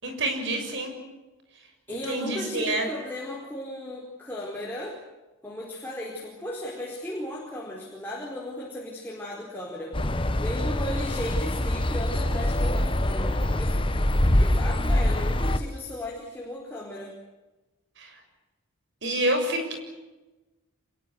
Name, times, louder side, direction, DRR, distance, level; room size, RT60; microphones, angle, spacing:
voice 1, 0.0-0.9 1.9-2.9 18.0-18.2 19.0-19.8, right 1 dB, 55° right, 5 dB, 6.9 m, -28 dB
voice 2, 1.9-5.0 5.4-13.7 14.4-17.1, left 1 dB, 10° left, -3 dB, 4.6 m, -36 dB
sound 1, 9.9-15.6, left 1 dB, 25° left, 1.2 m, -24 dB
27.0 x 22.5 x 7.9 m, 1.1 s
head